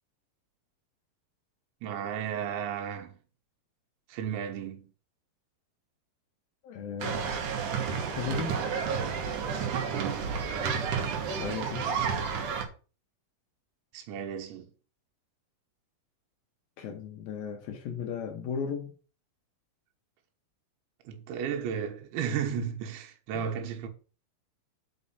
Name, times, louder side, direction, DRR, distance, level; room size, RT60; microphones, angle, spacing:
voice 1, 1.8-3.2 4.1-4.9 9.9-10.4 13.9-14.7 21.1-23.9, right 8 dB, 90° right, 3.6 m, -34 dB
voice 2, 6.6-7.4 8.1-8.6 11.3-11.9 16.8-18.9 23.3-23.4, left 6 dB, 70° left, 2.4 m, -36 dB
sound 1, 7.0-12.7, right 6 dB, 60° right, 2.3 m, -31 dB
6.4 x 5.6 x 7.1 m
omnidirectional pair, 5.1 m